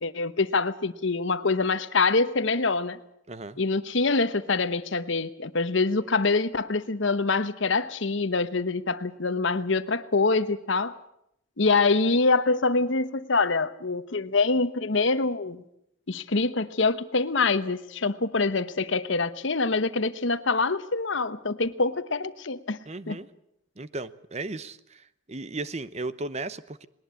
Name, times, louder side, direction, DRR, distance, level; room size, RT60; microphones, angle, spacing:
voice 1, 0.0-3.0 3.6-11.0 11.6-15.6 16.1-22.8 23.1-23.2, left 3 dB, 65° left, 13 dB, 1.0 m, -25 dB
voice 2, 3.3-3.6 22.9-23.3 23.8-25.0 25.3-26.9, right 2 dB, 30° right, 15 dB, 0.8 m, -35 dB
20.5 x 19.0 x 8.3 m, 0.76 s
head